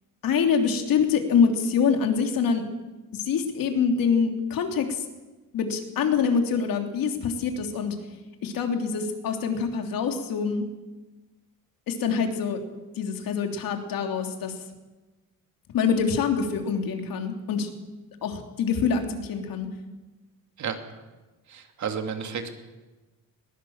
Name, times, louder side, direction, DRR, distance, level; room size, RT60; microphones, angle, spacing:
voice 1, 0.2-2.6 3.1-5.0 5.5-7.9 8.4-10.6 11.9-12.6 13.0-14.5 15.7-17.7 18.2-19.7, left 6 dB, 75° left, 4 dB, 3.3 m, -25 dB
voice 2, 21.5-22.5, right 7 dB, 55° right, 5 dB, 2.6 m, -31 dB
21.0 x 20.5 x 7.3 m, 1.2 s
cardioid pair, 175°, 34 cm